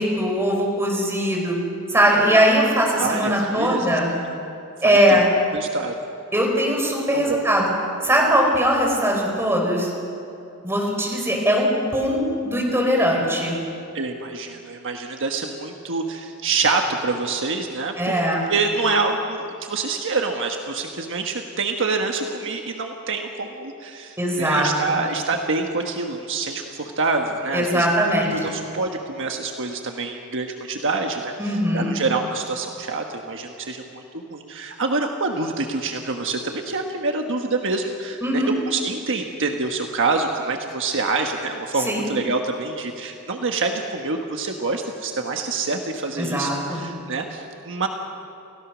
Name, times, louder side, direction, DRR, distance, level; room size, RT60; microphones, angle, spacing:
voice 1, 0.0-1.5 1.9-4.1 4.8-5.3 6.3-7.7 8.0-9.9 10.6-12.2 12.4-13.6 18.0-18.4 24.2-25.0 27.5-28.5 31.4-31.9 38.2-38.5 41.9-42.0 46.2-46.9, equal, 10° right, -1 dB, 4.7 m, -20 dB
voice 2, 3.0-4.2 4.8-5.2 5.5-6.1 7.1-7.4 13.9-18.1 18.5-47.9, right 3 dB, 60° right, 3 dB, 1.4 m, -26 dB
29.0 x 16.5 x 6.2 m, 2.8 s
head